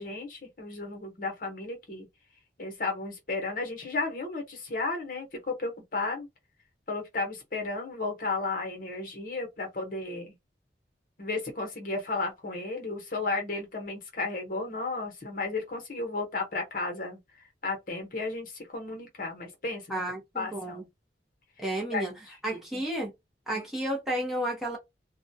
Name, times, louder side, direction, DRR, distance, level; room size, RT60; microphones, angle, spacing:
voice 1, 0.0-2.1 2.6-6.3 6.9-10.3 11.2-17.2 17.6-20.0 20.3-20.8 21.9-22.1 22.5-22.8 23.5-23.6, left 3 dB, 50° left, 0.9 m, -33 dB
voice 2, 19.9-20.8 21.6-22.1 22.4-23.1 23.5-24.8, right 1 dB, ahead, 0.7 m, -32 dB
2.3 x 2.2 x 2.7 m
head